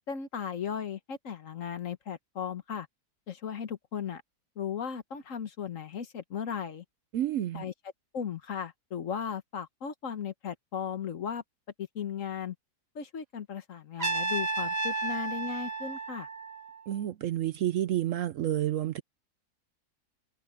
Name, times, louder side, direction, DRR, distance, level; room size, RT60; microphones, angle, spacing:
voice 1, 0.1-2.9 3.3-4.2 4.6-6.8 7.5-7.7 8.1-11.4 11.8-12.5 12.9-16.3, left 7 dB, 55° left, 1.4 m, -36 dB
voice 2, 7.1-7.6 16.9-19.0, right 12 dB, 65° right, 0.8 m, -29 dB
Trumpet, 14.0-17.0, right 3 dB, 25° right, 1.6 m, -33 dB
omnidirectional pair, 1.7 m